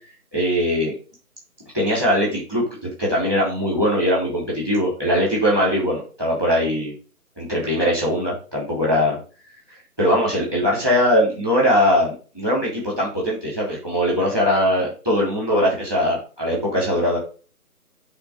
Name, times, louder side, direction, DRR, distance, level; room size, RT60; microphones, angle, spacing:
voice 1, 0.3-0.9 1.7-6.9 7.4-9.2 10.0-17.2, equal, 15° right, -4 dB, 3.1 m, -21 dB
8.3 x 3.7 x 6.3 m, 0.37 s
figure-of-eight pair, 155°, 45 cm